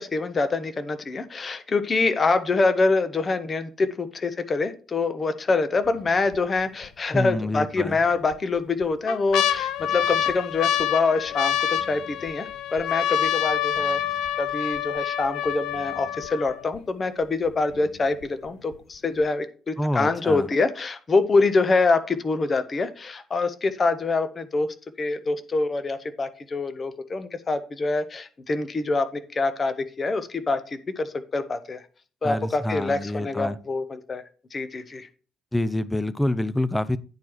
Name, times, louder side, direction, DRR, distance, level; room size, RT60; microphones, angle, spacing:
voice 1, 0.0-14.0 14.4-24.7 25.0-30.6 31.0-31.8 32.2-34.2 34.5-35.1, left 3 dB, 35° left, 9 dB, 1.0 m, -25 dB
sound 1, 5.9-6.3 6.8-6.9 7.8-8.3 8.8-16.8 17.5-17.6 17.7-18.2 18.7-18.8, left 10 dB, 65° left, 0.5 m, -27 dB
voice 2, 7.1-8.0 19.8-20.5 32.2-33.6 35.5-37.0, left 1 dB, 10° left, 14 dB, 0.6 m, -27 dB
9.4 x 4.6 x 4.5 m, 0.39 s
figure-of-eight pair, 45°, 0 cm